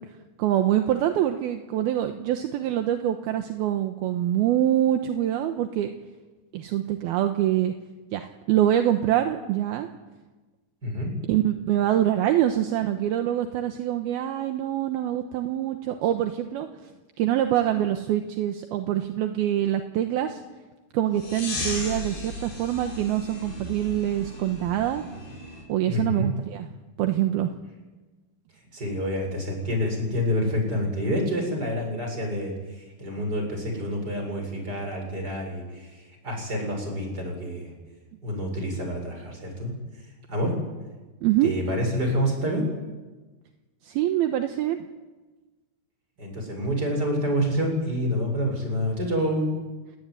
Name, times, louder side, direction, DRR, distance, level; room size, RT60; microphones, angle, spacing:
voice 1, 0.4-5.9 6.5-7.7 8.1-9.9 11.3-16.7 17.2-20.4 20.9-25.0 25.7-26.7 27.0-27.5 41.2-41.5 43.8-44.8, right 12 dB, 75° right, 6 dB, 2.9 m, -25 dB
sound 1, 21.2-25.6, left 2 dB, 55° left, 7.9 m, -35 dB
voice 2, 25.9-26.3 28.7-32.5 33.0-37.7 38.2-39.7 40.3-40.6 41.4-42.6 46.2-49.5, equal, 20° right, 2 dB, 7.6 m, -27 dB
29.5 x 18.5 x 9.7 m, 1.2 s
omnidirectional pair, 4.8 m